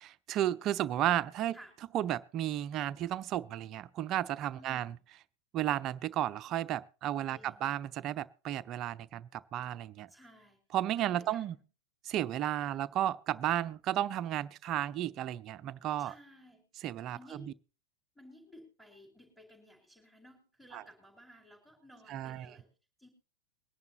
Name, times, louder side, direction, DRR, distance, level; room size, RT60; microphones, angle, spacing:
voice 1, 0.3-1.6 1.9-4.9 5.5-10.1 10.7-11.6 12.0-16.1 16.8-17.2 20.7-20.8 22.1-22.5, right 12 dB, 35° right, 0.6 m, -33 dB
voice 2, 4.6-5.0 7.3-7.8 10.1-10.6 11.0-11.6 12.6-12.8 16.0-16.6 17.1-17.5 18.2-22.7 23.0-23.1, equal, ahead, 3.8 m, -56 dB
22.0 x 10.5 x 2.8 m
figure-of-eight pair, 90°, 0 cm